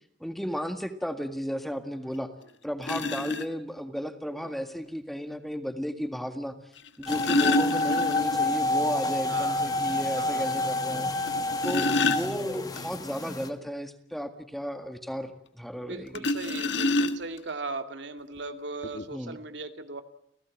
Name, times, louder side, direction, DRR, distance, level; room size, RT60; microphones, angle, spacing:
voice 1, 0.2-2.3 2.6-6.6 7.0-11.1 11.6-16.3 19.1-19.4, equal, ahead, 8 dB, 1.8 m, -34 dB
sound 1, 2.1-2.2 2.8-3.5 4.9-5.0 6.8-8.5 8.8-8.9 9.3-9.4 9.9-10.0 11.3-12.8 16.1-17.5 18.4-18.5 18.8-19.0, left 2 dB, 80° left, 1.6 m, -27 dB
sound 2, 7.1-13.5, left 2 dB, 20° left, 1.8 m, -29 dB
voice 2, 9.3-9.8 10.2-11.0 11.7-12.0 15.8-20.0, right 3 dB, 75° right, 8 dB, 2.4 m, -39 dB
30.0 x 17.0 x 8.7 m, 0.74 s
head